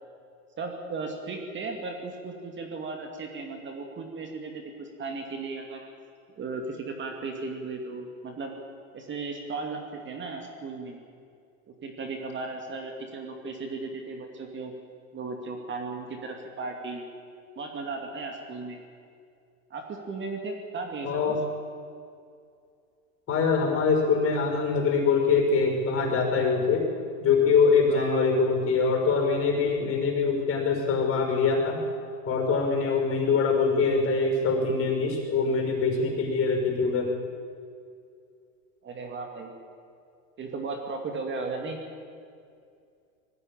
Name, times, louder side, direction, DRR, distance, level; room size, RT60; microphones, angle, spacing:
voice 1, 0.6-5.9 6.4-8.6 8.9-11.0 11.7-14.7 15.1-17.0 17.6-18.8 19.7-21.3 27.9-28.4 38.8-39.5 40.4-41.8, right 3 dB, 30° right, 3 dB, 2.5 m, -36 dB
voice 2, 21.0-21.4 23.3-26.9 27.2-31.8 32.3-37.1, left 5 dB, 35° left, 2 dB, 5.5 m, -24 dB
19.5 x 15.0 x 9.0 m, 2.4 s
supercardioid pair, 115°, 39 cm